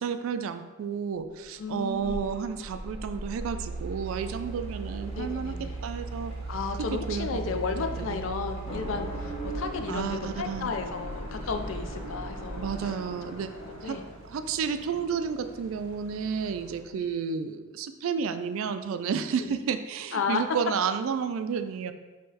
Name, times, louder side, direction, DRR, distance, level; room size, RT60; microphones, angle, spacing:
voice 1, 0.0-5.5 5.8-6.3 6.9-7.5 7.8-8.2 9.9-10.7 12.6-13.5 13.8-13.9 14.3-21.9, right 6 dB, 70° right, 10 dB, 0.3 m, -31 dB
Mechanical fan, 1.5-12.8, right 3 dB, 25° right, 0.7 m, -38 dB
voice 2, 1.6-2.3 5.1-5.7 6.5-12.9 13.7-14.0 16.9-17.1 19.4-19.5 20.1-20.4, left 4 dB, 60° left, 7 dB, 0.4 m, -33 dB
sound 1, 4.0-16.8, right 2 dB, 85° right, 0.7 m, -50 dB
sound 2, 8.6-14.2, right 1 dB, 30° left, 0.9 m, -39 dB
5.6 x 3.0 x 2.8 m, 1.3 s
head